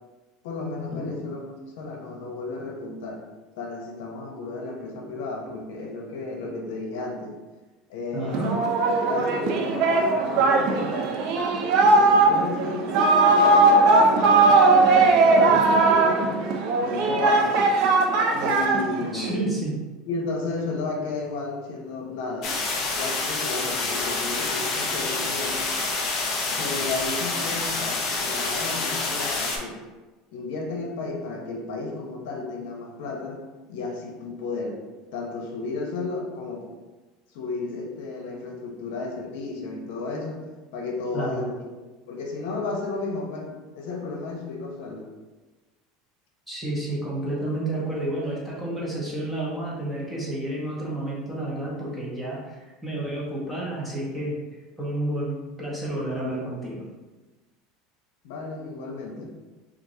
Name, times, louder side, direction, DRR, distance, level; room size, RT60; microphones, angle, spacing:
voice 1, 0.4-1.4 1.8-3.2 3.6-7.4 7.9-8.6 9.0-11.1 11.8-14.5 14.8-16.4 16.8-17.5 18.3-19.4 20.1-22.5 22.9-25.6 26.6-29.8 30.3-33.4 33.7-34.8 35.1-36.7 37.3-40.4 40.7-41.6 42.1-43.5 43.7-45.1 58.2-59.3, left 3 dB, 75° left, 1 dB, 0.7 m, -33 dB
voice 2, 8.1-8.5 19.1-19.8 41.1-41.4 46.5-54.4 54.8-56.8, right 1 dB, 5° right, -6 dB, 1.0 m, -30 dB
Singing, 8.3-19.3, right 3 dB, 55° right, 0.5 m, -19 dB
sound 1, 22.4-29.6, left 3 dB, 40° left, 0.6 m, -27 dB
4.6 x 2.5 x 2.6 m, 1.2 s
supercardioid pair, 145°, 0 cm